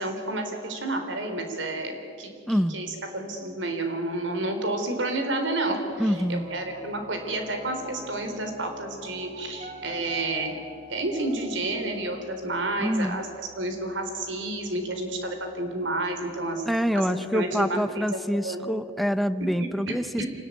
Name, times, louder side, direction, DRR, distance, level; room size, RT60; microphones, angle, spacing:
voice 1, 0.0-2.3 2.7-10.5 10.9-16.6 16.9-18.6 19.9-20.3, right 2 dB, 80° right, 5 dB, 4.1 m, -30 dB
voice 2, 2.5-2.8 6.0-6.5 12.8-13.2 16.7-20.3, equal, ahead, 11 dB, 0.8 m, -26 dB
Piano, 5.9-16.3, equal, 40° right, 4.1 m, -46 dB
27.0 x 19.5 x 9.4 m, 2.3 s
head